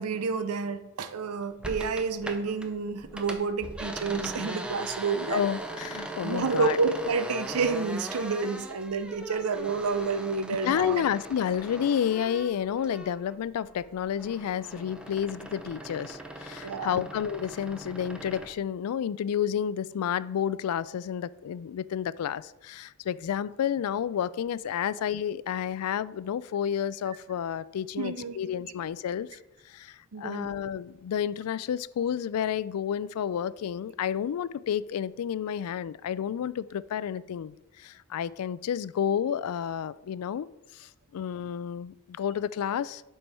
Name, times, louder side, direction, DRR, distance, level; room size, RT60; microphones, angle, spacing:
voice 1, 0.0-5.4 6.2-11.0 16.6-17.0 28.0-28.4 30.1-30.6, right 4 dB, 85° right, 11 dB, 0.6 m, -29 dB
sound 1, 1.6-2.7 3.0-13.4 13.7-18.5, right 1 dB, 5° right, 0.6 m, -40 dB
voice 2, 5.3-6.8 9.3-9.4 10.6-29.4 29.7-40.5 40.7-43.0, left 8 dB, 85° left, 19 dB, 0.3 m, -30 dB
7.8 x 4.5 x 5.4 m, 0.96 s
head